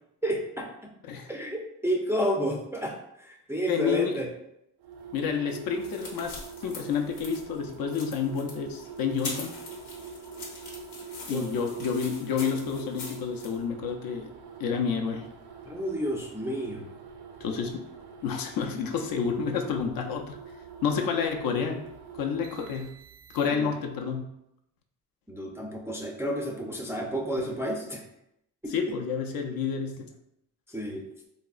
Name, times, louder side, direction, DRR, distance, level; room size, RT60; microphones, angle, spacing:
voice 1, 0.2-0.9 1.3-4.3 11.3-11.5 15.7-16.8 23.5-23.7 25.3-28.0 28.6-28.7 30.7-31.0, equal, 5° right, -1 dB, 0.3 m, -31 dB
voice 2, 3.7-4.1 5.1-9.5 11.3-14.3 14.6-15.3 17.4-17.8 18.2-20.4 20.8-21.8 22.1-22.9 23.3-24.3 28.7-30.1, left 6 dB, 65° left, 3 dB, 0.5 m, -29 dB
sound 1, 4.8-23.8, right 5 dB, 80° right, 0.5 m, -45 dB
sound 2, 5.5-13.6, left 3 dB, 85° left, 0.9 m, -43 dB
3.4 x 2.0 x 2.3 m, 0.80 s
cardioid pair, 80°, 39 cm